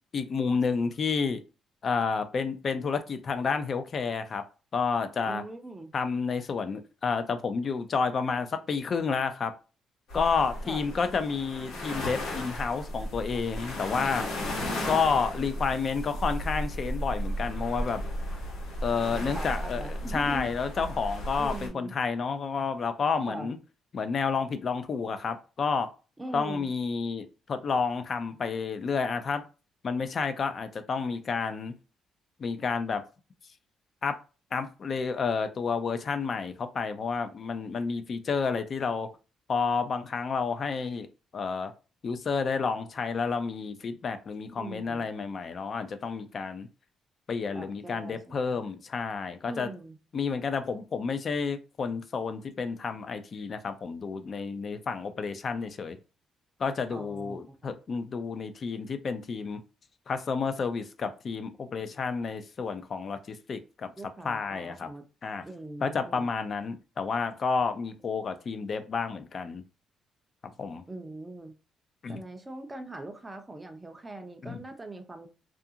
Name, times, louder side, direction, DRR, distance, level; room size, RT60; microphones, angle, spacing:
voice 1, 0.1-1.4 1.8-4.4 4.7-5.4 5.9-9.5 10.1-14.2 14.9-18.0 18.8-23.6 23.9-25.9 26.3-29.4 29.8-31.7 32.4-33.0 34.0-34.1 34.5-39.1 39.5-41.1 41.3-41.7 42.0-46.7 47.3-49.7 50.1-56.0 56.6-59.6 60.1-63.9 64.2-64.9 65.2-65.4 65.8-69.6 70.4-70.8 72.0-72.2 74.4-74.6, left 5 dB, 50° left, 0.4 m, -30 dB
voice 2, 5.3-5.9 10.6-10.9 14.6-15.0 19.1-20.5 21.4-21.9 23.2-23.5 26.2-26.7 44.6-45.1 47.5-48.6 49.5-50.0 56.9-57.8 64.0-65.0 65.4-66.3 70.9-71.5 72.1-75.3, right 2 dB, 15° right, 0.5 m, -41 dB
sound 1, 10.1-21.7, equal, 90° left, 1.1 m, -35 dB
2.4 x 2.3 x 2.7 m
cardioid pair, 90°, 0 cm